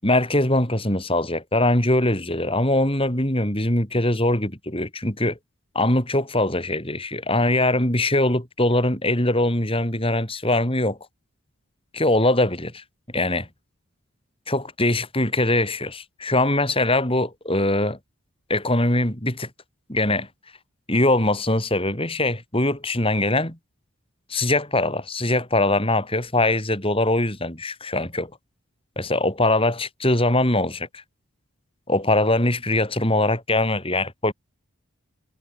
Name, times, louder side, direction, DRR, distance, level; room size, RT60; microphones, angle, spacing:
voice 1, 0.0-5.4 5.7-11.0 11.9-12.8 13.1-13.5 14.5-18.0 18.5-19.5 19.9-20.3 20.9-23.6 24.3-28.3 29.0-31.0 31.9-34.3, left 1 dB, 25° left, 6.5 m, -22 dB
head